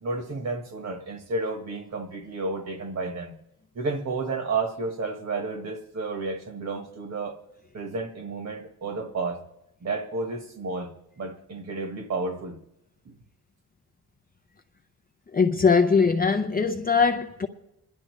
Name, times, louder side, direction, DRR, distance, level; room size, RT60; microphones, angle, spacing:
voice 1, 0.0-3.3 3.7-7.4 7.7-9.4 9.8-10.9 11.2-12.6 13.0-13.1, right 3 dB, 45° right, 1.4 m, -31 dB
voice 2, 15.3-17.5, left 5 dB, 25° left, 0.5 m, -21 dB
26.0 x 11.0 x 3.2 m
wide cardioid pair, 170°, 37 cm